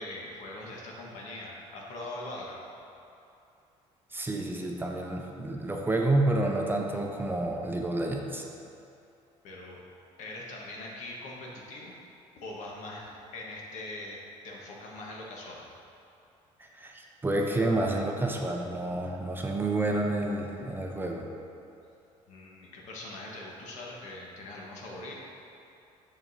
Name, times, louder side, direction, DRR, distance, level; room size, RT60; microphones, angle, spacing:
voice 1, 0.0-2.6 9.4-9.8 10.2-12.0 12.3-14.2 14.4-15.6 22.3-25.1, left 2 dB, 70° left, -3 dB, 1.3 m, -42 dB
voice 2, 4.1-8.4 16.6-21.2, right 2 dB, 15° right, 1 dB, 0.6 m, -29 dB
7.1 x 6.1 x 2.7 m, 2.7 s
cardioid pair, 100°, 13 cm